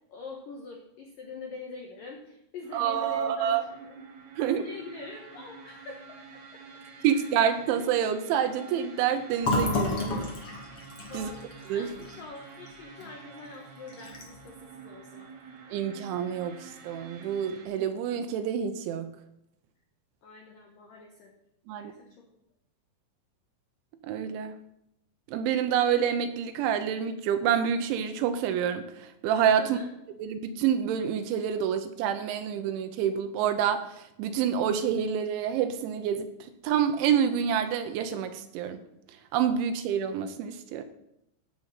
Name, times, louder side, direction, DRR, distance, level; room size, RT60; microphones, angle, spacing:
voice 1, 0.1-4.0 4.6-6.0 6.3-6.4 7.1-7.3 11.1-15.3 20.2-21.3 21.7-22.3 29.6-29.9, left 4 dB, 80° left, 1 dB, 1.9 m, -44 dB
sound 1, 2.6-17.7, right 5 dB, 55° right, 2.8 m, -48 dB
voice 2, 2.7-3.6 4.4-4.7 7.0-10.2 11.1-11.3 11.7-11.9 15.7-19.1 21.7-21.9 24.0-24.6 25.3-29.8 30.2-36.3 36.6-38.8 39.3-40.8, right 8 dB, 80° right, 8 dB, 2.9 m, -27 dB
Fill (with liquid), 9.4-13.1 13.4-13.6 13.9-14.5, left 2 dB, 45° left, 2.1 m, -31 dB
15.5 x 6.3 x 5.7 m, 0.80 s
omnidirectional pair, 6.0 m